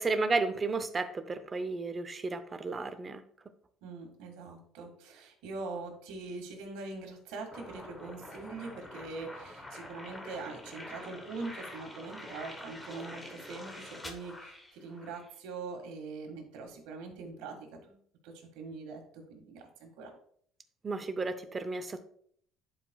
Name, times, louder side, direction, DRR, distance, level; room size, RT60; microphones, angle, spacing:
voice 1, 0.0-3.2 20.8-22.0, right 3 dB, 25° right, 11 dB, 0.6 m, -33 dB
voice 2, 3.8-18.0 18.2-20.1, right 3 dB, 85° right, 3 dB, 1.8 m, -43 dB
sound 1, 7.5-15.3, left 1 dB, 15° left, 1.0 m, -46 dB
11.0 x 5.0 x 2.3 m, 0.64 s
cardioid pair, 130°, 0 cm